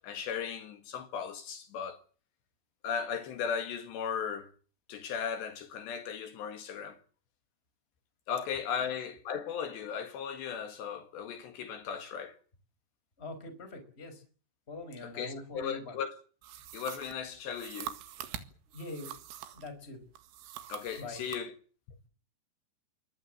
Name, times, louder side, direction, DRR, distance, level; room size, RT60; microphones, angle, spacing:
voice 1, 0.0-2.0 2.8-4.5 4.9-7.0 8.3-12.4 15.2-16.2 16.7-18.0 20.7-21.5, left 7 dB, 65° left, 3.7 m, -36 dB
voice 2, 13.2-14.2 14.7-16.0 18.7-19.1 19.5-20.0 21.0-21.2, left 2 dB, 15° left, 4.8 m, -43 dB
sound 1, 16.4-19.7 20.1-21.5, right 11 dB, 85° right, 4.3 m, -44 dB
24.5 x 20.0 x 7.7 m
omnidirectional pair, 5.6 m